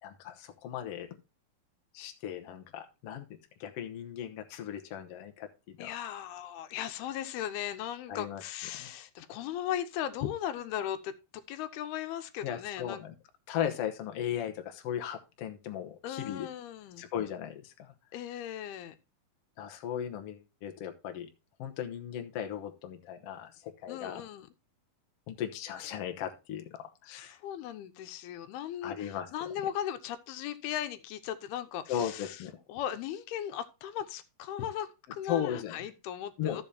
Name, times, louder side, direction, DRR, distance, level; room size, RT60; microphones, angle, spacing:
voice 1, 0.0-1.1 1.9-3.2 3.6-5.9 8.1-8.4 8.7-8.9 12.4-13.1 13.5-16.5 17.0-17.9 19.6-21.3 21.6-24.2 25.3-27.4 28.8-29.3 31.9-32.5 35.3-35.8 36.4-36.6, left 9 dB, 75° left, 6 dB, 1.4 m, -37 dB
voice 2, 5.8-13.0 16.0-17.1 18.1-19.0 23.9-24.5 27.1-32.4 32.7-36.6, left 10 dB, 90° left, 10 dB, 2.8 m, -37 dB
14.0 x 6.9 x 2.8 m, 0.27 s
omnidirectional pair, 4.4 m